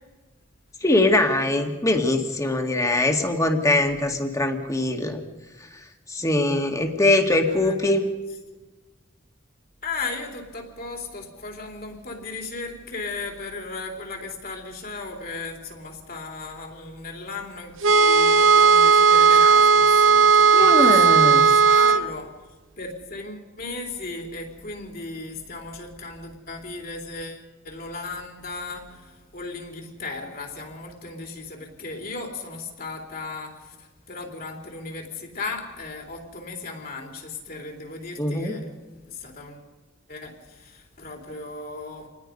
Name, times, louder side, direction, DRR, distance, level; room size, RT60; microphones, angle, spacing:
voice 1, 0.8-5.2 6.1-8.0 20.5-21.4 38.2-38.6, left 2 dB, 15° left, 4 dB, 2.1 m, -22 dB
voice 2, 7.5-7.9 9.8-22.3 22.8-39.7 40.1-42.1, left 3 dB, 45° left, 2 dB, 3.7 m, -36 dB
sound 1, 17.8-22.0, right 5 dB, 75° right, 1.0 m, -15 dB
27.5 x 20.0 x 5.4 m, 1.2 s
head